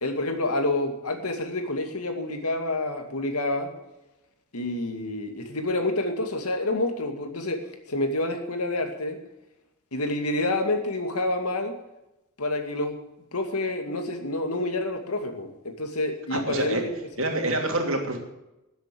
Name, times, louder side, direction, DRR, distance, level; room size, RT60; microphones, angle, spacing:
voice 1, 0.0-3.7 4.5-7.6 7.9-9.2 9.9-11.8 12.4-13.0 13.3-16.9, left 2 dB, 90° left, 5 dB, 2.3 m, -28 dB
voice 2, 16.3-16.8 17.2-18.2, right 2 dB, 60° right, 3 dB, 2.8 m, -26 dB
13.5 x 8.0 x 8.5 m, 0.94 s
head